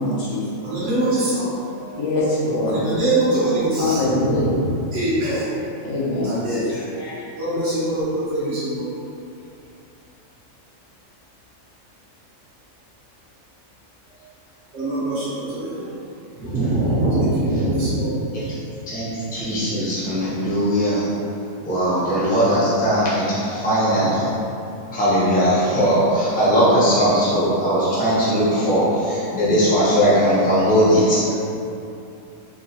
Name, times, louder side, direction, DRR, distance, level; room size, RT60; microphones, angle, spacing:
voice 1, 0.0-0.4 2.0-2.8 3.8-4.5 5.8-6.4 6.7-7.2, left 2 dB, 75° left, -6 dB, 1.1 m, -23 dB
voice 2, 0.6-2.0 2.6-4.6 4.9-5.5 6.2-6.8 7.4-8.8 14.7-15.9 16.4-18.5, right 1 dB, 60° right, -12 dB, 1.1 m, -23 dB
voice 3, 18.9-21.1 21.7-24.3 24.9-31.3, equal, 10° left, -11 dB, 0.6 m, -19 dB
3.7 x 2.3 x 2.7 m, 2.7 s
omnidirectional pair, 1.4 m